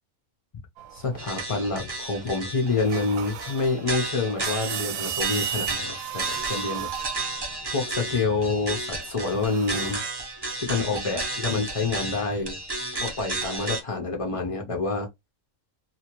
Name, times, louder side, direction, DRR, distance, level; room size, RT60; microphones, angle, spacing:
sound 1, 0.8-1.8 2.4-9.9, right 10 dB, 75° right, 0.9 m, -36 dB
voice 1, 0.9-6.9 7.7-10.0 10.6-12.6 13.0-15.1, left 3 dB, 60° left, 0.3 m, -27 dB
sound 2, 1.2-13.8, right 2 dB, 25° right, 0.5 m, -33 dB
2.7 x 2.5 x 2.9 m
omnidirectional pair, 1.5 m